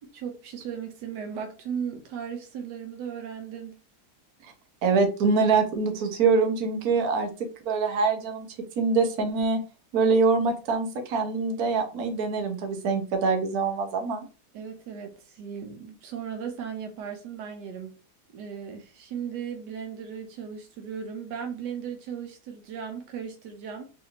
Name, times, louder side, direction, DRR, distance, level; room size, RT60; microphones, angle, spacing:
voice 1, 0.0-3.8 14.5-17.9 18.3-23.8, right 7 dB, 90° right, 1.3 m, -36 dB
voice 2, 4.8-8.5 8.8-9.6 9.9-14.3, right 4 dB, 65° right, 1.2 m, -24 dB
4.0 x 2.6 x 2.9 m
omnidirectional pair, 1.8 m